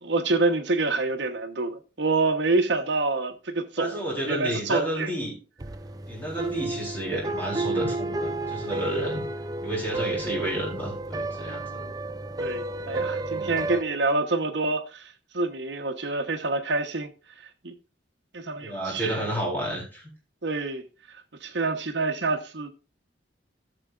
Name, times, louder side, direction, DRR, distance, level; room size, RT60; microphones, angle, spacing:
voice 1, 0.0-5.1 11.4-12.0 12.4-17.1 17.6-17.7 18.3-19.2 20.4-20.8 21.4-22.7, right 3 dB, 65° right, 1.0 m, -27 dB
voice 2, 3.8-5.4 6.1-9.3 9.6-11.8 13.3-13.6 18.6-20.0, right 1 dB, 10° left, 3.7 m, -31 dB
sound 1, 5.6-13.8, right 2 dB, 20° right, 0.4 m, -32 dB
15.0 x 6.8 x 2.4 m
head